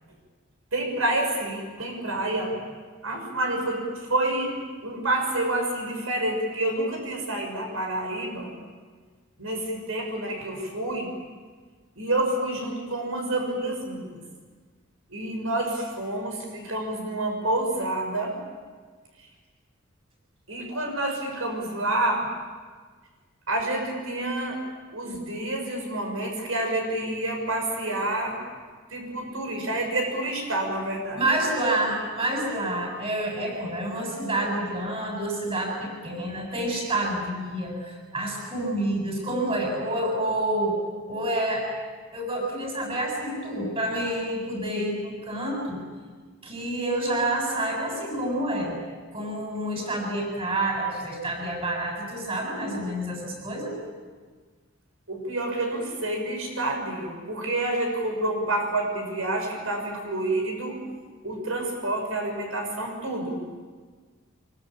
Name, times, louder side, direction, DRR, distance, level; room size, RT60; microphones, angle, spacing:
voice 1, 0.7-2.5 3.0-4.6 4.8-8.5 9.4-11.1 12.0-14.2 15.1-18.3 20.5-22.3 23.5-24.6 24.9-28.4 28.9-31.2 55.1-60.8 61.2-63.4, right 1 dB, 75° right, 2 dB, 6.4 m, -28 dB
voice 2, 31.2-40.8 41.1-41.7 42.1-45.8 46.4-48.8 49.1-53.8, right 1 dB, 25° right, 0 dB, 7.5 m, -28 dB
25.5 x 24.0 x 8.7 m, 1.5 s
head